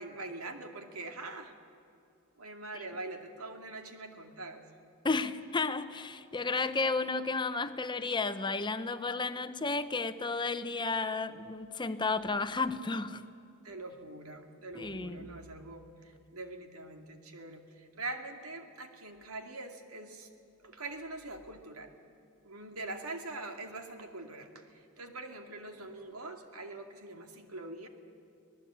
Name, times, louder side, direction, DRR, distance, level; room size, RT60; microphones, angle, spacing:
voice 1, 0.0-1.5 2.4-4.6 13.6-20.3 20.6-21.9 22.4-27.9, right 2 dB, 85° right, 5 dB, 2.5 m, -43 dB
voice 2, 5.0-13.2 14.7-15.3, left 3 dB, 20° left, 10 dB, 0.9 m, -32 dB
25.5 x 18.0 x 8.8 m, 2.6 s
head